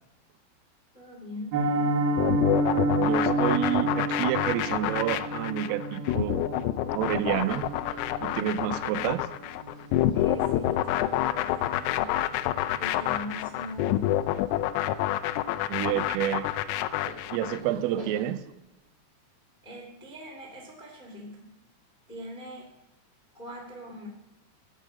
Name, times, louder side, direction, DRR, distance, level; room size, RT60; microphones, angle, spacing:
voice 1, 0.9-1.6 10.1-12.2 12.8-14.2 15.9-16.2 19.6-21.5 22.1-22.7 23.3-24.1, left 1 dB, 25° left, 0 dB, 0.9 m, -42 dB
Piano, 1.5-12.4 12.7-12.9 13.2-13.4 13.7-14.0 14.3-14.4, right 2 dB, 60° right, 2.6 m, -31 dB
sound 1, 2.2-17.6, left 13 dB, 85° left, 3.3 m, -27 dB
voice 2, 3.0-6.5 6.9-7.7 8.2-9.3 15.7-16.5 17.3-18.5, right 12 dB, 85° right, 12 dB, 3.4 m, -29 dB
sound 2, 7.1-18.3, right 1 dB, 25° right, 5.4 m, -52 dB
15.5 x 10.0 x 7.5 m, 0.94 s
omnidirectional pair, 5.8 m